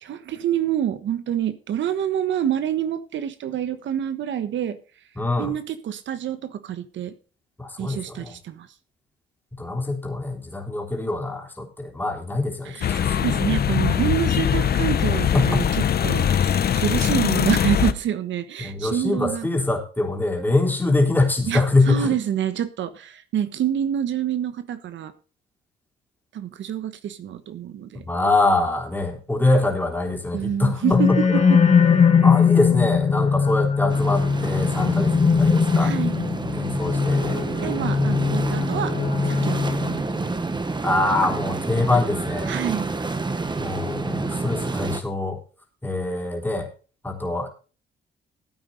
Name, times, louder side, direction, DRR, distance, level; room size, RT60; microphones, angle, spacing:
voice 1, 0.0-4.8 5.4-7.1 7.8-8.7 12.6-12.9 13.2-15.6 16.0-19.5 21.5-25.1 26.3-28.0 30.3-31.1 31.5-31.6 35.8-36.2 37.6-38.9 39.3-40.4 42.5-42.9, right 10 dB, 70° right, 11 dB, 1.4 m, -27 dB
voice 2, 5.2-5.5 7.6-8.4 9.6-13.2 15.3-15.7 18.6-22.1 28.0-31.2 32.1-35.9 36.6-37.4 40.8-42.5 43.6-45.4 45.8-46.7 47.0-47.5, left 2 dB, 10° left, 1 dB, 3.7 m, -24 dB
sound 1, 12.8-17.9, left 9 dB, 55° left, 0.9 m, -21 dB
sound 2, 30.8-40.2, left 6 dB, 35° left, 2.0 m, -20 dB
sound 3, 33.9-45.0, right 3 dB, 20° right, 1.5 m, -29 dB
14.5 x 8.9 x 4.0 m, 0.36 s
cardioid pair, 90°, 20 cm